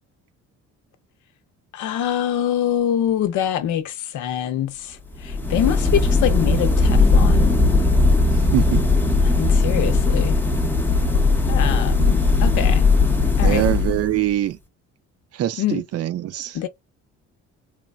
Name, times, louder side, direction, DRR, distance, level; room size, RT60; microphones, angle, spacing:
voice 1, 1.7-7.6 9.2-10.4 11.5-12.9 13.4-13.7 15.6-15.8 16.5-16.7, left 10 dB, 80° left, 0.7 m, -25 dB
sound 1, 5.1-14.3, left 3 dB, 5° left, 0.7 m, -18 dB
voice 2, 8.3-8.8 13.4-14.6 15.3-16.7, right 12 dB, 55° right, 0.5 m, -23 dB
3.2 x 2.1 x 2.3 m
cardioid pair, 100°, 30 cm